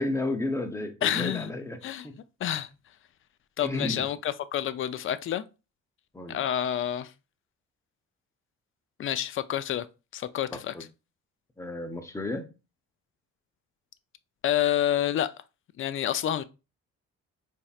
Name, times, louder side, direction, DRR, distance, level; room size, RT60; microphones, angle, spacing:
voice 1, 0.0-1.8 2.0-2.2 3.6-4.1 6.1-6.4 10.7-10.8 11.6-12.5, left 2 dB, 10° left, 0.6 m, -32 dB
voice 2, 1.0-1.5 1.8-2.1 2.4-2.7 3.6-5.4 6.3-7.1 9.0-9.9 10.1-10.7 14.4-15.3 15.8-16.4, left 11 dB, 45° left, 0.4 m, -28 dB
4.2 x 3.1 x 2.3 m
cardioid pair, 90°, 30 cm